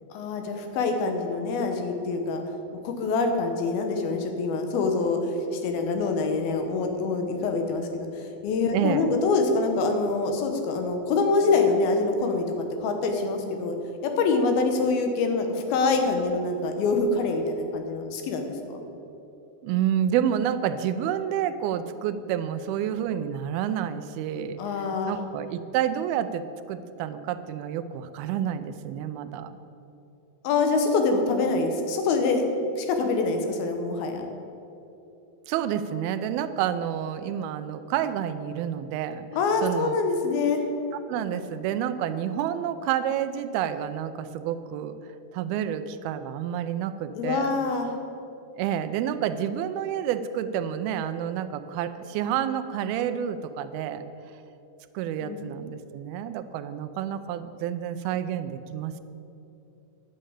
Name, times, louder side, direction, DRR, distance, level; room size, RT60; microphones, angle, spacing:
voice 1, 0.1-2.4 2.8-13.8 14.0-18.8 24.6-25.2 30.4-32.4 32.8-34.3 39.3-40.6 47.2-47.9 55.2-55.5, left 3 dB, 80° left, 5 dB, 3.0 m, -25 dB
voice 2, 8.7-9.1 19.6-29.6 35.5-39.3 39.6-40.0 41.1-45.0 45.3-47.6 48.6-54.0 54.9-59.0, right 9 dB, 85° right, 11 dB, 2.5 m, -29 dB
10.5 x 6.5 x 8.6 m, 2.9 s
omnidirectional pair, 4.3 m